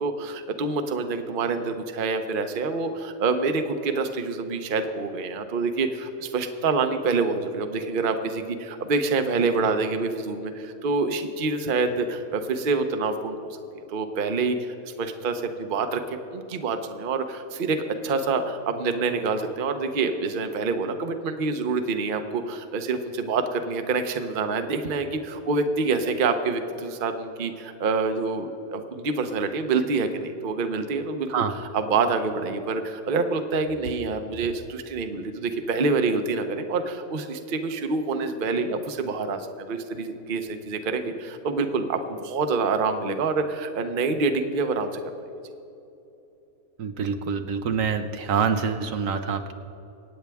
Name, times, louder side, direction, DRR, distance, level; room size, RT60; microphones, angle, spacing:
voice 1, 0.0-13.6 13.9-31.4 31.7-45.0, right 4 dB, 45° right, 7 dB, 0.8 m, -26 dB
voice 2, 46.8-49.5, right 6 dB, 70° right, 7 dB, 1.1 m, -26 dB
25.5 x 8.8 x 3.5 m, 2.9 s
omnidirectional pair, 1.5 m